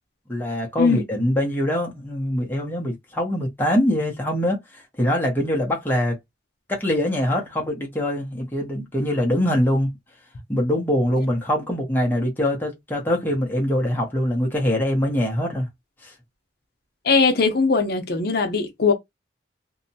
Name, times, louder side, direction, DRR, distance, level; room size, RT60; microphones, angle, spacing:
voice 1, 0.3-6.2 6.7-9.9 10.5-15.7 16.0-16.1, left 1 dB, 10° left, 0.7 m, -23 dB
voice 2, 17.0-18.9, left 4 dB, 55° left, 0.6 m, -20 dB
2.7 x 2.1 x 2.7 m
head